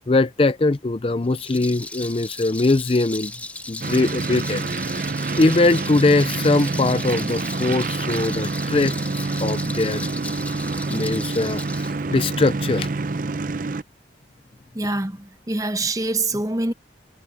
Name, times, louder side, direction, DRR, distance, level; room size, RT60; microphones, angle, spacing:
voice 1, 0.1-3.3 3.7-4.6 5.4-8.9 9.4-10.1 10.9-12.9, left 2 dB, 30° left, 0.5 m, -21 dB
Rattle, 1.2-11.9, left 2 dB, 10° left, 2.0 m, -36 dB
sound 1, 3.8-13.8, right 3 dB, 50° right, 0.6 m, -27 dB
voice 2, 14.7-16.7, right 2 dB, 20° right, 0.9 m, -25 dB
head